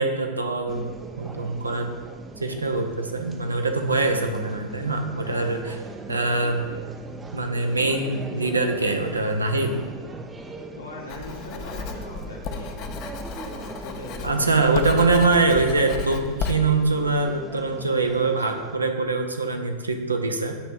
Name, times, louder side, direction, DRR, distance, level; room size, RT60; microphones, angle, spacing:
voice 1, 0.0-1.9 2.4-5.8 6.1-6.8 7.3-9.8 14.2-20.5, right 3 dB, 80° right, 5 dB, 0.6 m, -23 dB
sound 1, 0.7-18.8, right 3 dB, 15° right, 0.4 m, -40 dB
voice 2, 5.2-5.7 10.8-12.9 13.4-14.6 14.9-15.1, left 1 dB, 75° left, -2 dB, 1.3 m, -39 dB
Writing, 11.1-16.6, left 5 dB, 40° left, 0.5 m, -34 dB
7.8 x 3.2 x 5.2 m, 1.4 s
figure-of-eight pair, 90°, 0 cm